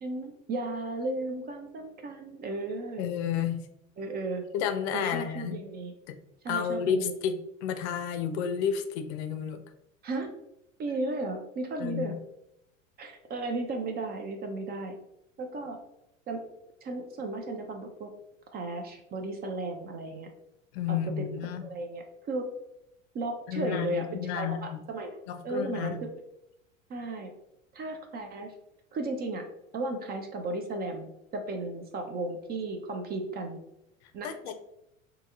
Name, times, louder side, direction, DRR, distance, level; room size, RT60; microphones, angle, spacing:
voice 1, 0.0-3.0 4.0-4.4 4.9-5.9 6.4-7.1 10.0-10.3 10.8-12.1 13.0-15.0 15.4-15.8 16.3-16.4 16.8-18.1 18.5-20.3 20.9-21.2 21.6-22.5 23.1-24.1 24.3-25.1 25.4-26.1 26.9-27.3 27.7-28.5 28.9-29.4 29.7-33.6 34.1-34.5, right 2 dB, 25° right, 4 dB, 0.4 m, -34 dB
voice 2, 3.0-3.7 4.5-5.6 6.1-6.2 6.5-9.6 11.8-12.2 20.7-21.7 23.5-24.8 25.3-26.1 34.2-34.5, left 8 dB, 55° left, 9 dB, 0.5 m, -31 dB
2.7 x 2.7 x 3.4 m, 0.84 s
hypercardioid pair, 85°, 39 cm